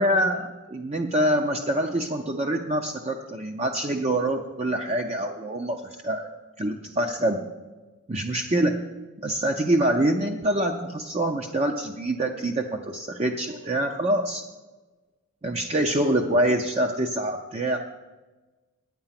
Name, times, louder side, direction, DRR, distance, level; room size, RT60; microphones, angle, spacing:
voice 1, 0.0-7.4 8.1-8.8 9.2-14.4 15.4-17.8, right 1 dB, 30° right, 3 dB, 0.6 m, -25 dB
9.5 x 9.0 x 5.8 m, 1.2 s
head